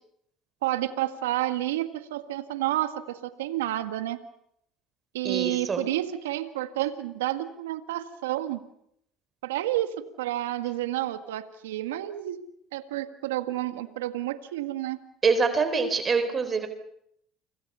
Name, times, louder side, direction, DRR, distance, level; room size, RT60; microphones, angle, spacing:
voice 1, 0.6-4.2 5.1-8.6 9.4-12.4 12.7-15.0, right 14 dB, 85° right, 10 dB, 1.7 m, -30 dB
voice 2, 5.2-5.8 15.2-16.7, right 4 dB, 35° right, 9 dB, 4.3 m, -25 dB
30.0 x 25.5 x 5.6 m, 0.74 s
hypercardioid pair, 80°, 0 cm